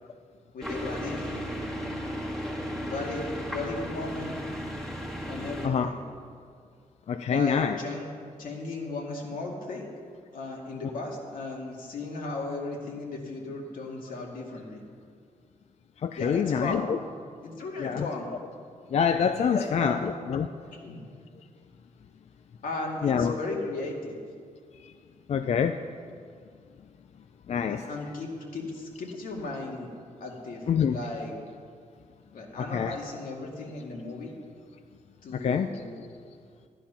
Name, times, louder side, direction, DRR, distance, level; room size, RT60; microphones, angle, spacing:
voice 1, 0.5-1.4 2.9-4.4 5.3-6.0 7.3-9.9 10.3-14.8 16.2-16.9 17.4-18.3 19.5-20.1 20.7-21.0 22.6-24.2 27.5-29.9 30.2-31.4 32.3-34.3 35.2-36.0, left 2 dB, 85° left, -1 dB, 2.2 m, -36 dB
sound 1, 0.6-5.7, equal, ahead, 1.8 m, -35 dB
voice 2, 7.1-7.8 16.0-17.0 17.8-18.1 18.9-20.5 23.0-23.4 24.8-24.9 25.3-25.8 27.5-27.8 30.7-31.0 32.6-33.0 35.3-35.8, left 7 dB, 50° left, 8 dB, 0.4 m, -26 dB
13.0 x 10.0 x 5.7 m, 2.2 s
wide cardioid pair, 150°, 14 cm